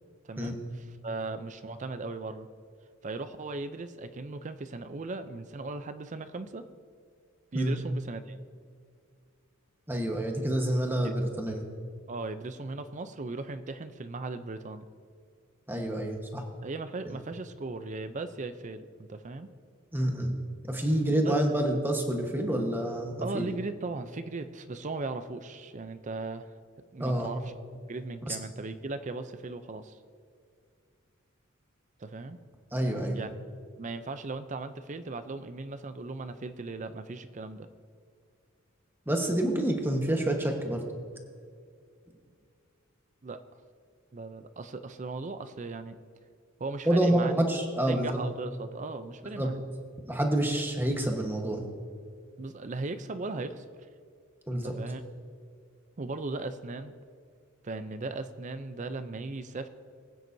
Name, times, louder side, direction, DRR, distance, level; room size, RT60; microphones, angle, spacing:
voice 1, 0.2-2.5 3.0-6.7 7.5-8.4 11.0-11.2 12.1-14.9 16.6-19.5 21.2-21.4 23.2-26.5 26.9-30.0 32.0-32.4 33.1-33.3 33.8-37.7 43.2-43.4 44.1-46.0 46.6-47.4 47.9-49.6 52.4-53.7 54.5-55.0 56.0-56.9 57.6-59.7, right 3 dB, 35° right, 11 dB, 0.5 m, -37 dB
voice 2, 9.9-11.6 15.7-16.4 19.9-20.3 20.7-23.4 27.0-27.3 28.3-28.4 32.7-33.2 39.1-40.8 46.9-48.2 49.4-49.5 50.1-51.7 54.5-54.7, right 1 dB, 10° right, 2 dB, 1.2 m, -28 dB
20.5 x 9.2 x 2.7 m, 2.2 s
head